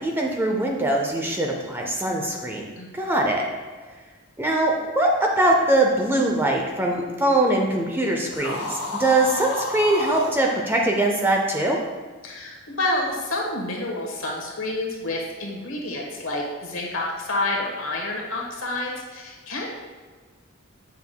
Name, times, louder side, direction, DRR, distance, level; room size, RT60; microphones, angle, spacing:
voice 1, 0.0-2.7 2.9-3.4 4.4-11.8, right 1 dB, 10° right, 0 dB, 0.5 m, -22 dB
sound 1, 8.3-10.4, left 3 dB, 85° left, 0.7 m, -30 dB
voice 2, 12.2-19.7, left 2 dB, 70° left, -1 dB, 1.2 m, -29 dB
7.7 x 5.7 x 2.3 m, 1.4 s
head